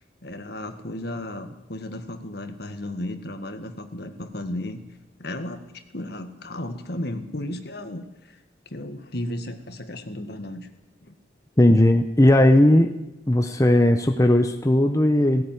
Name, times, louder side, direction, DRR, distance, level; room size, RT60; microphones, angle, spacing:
voice 1, 0.2-4.8 5.2-8.4 8.7-10.7 11.0-11.1, left 1 dB, 55° left, 7 dB, 1.9 m, -34 dB
voice 2, 11.6-12.9 13.3-15.4, left 1 dB, 15° left, 6 dB, 0.9 m, -17 dB
17.0 x 17.0 x 9.4 m, 0.94 s
head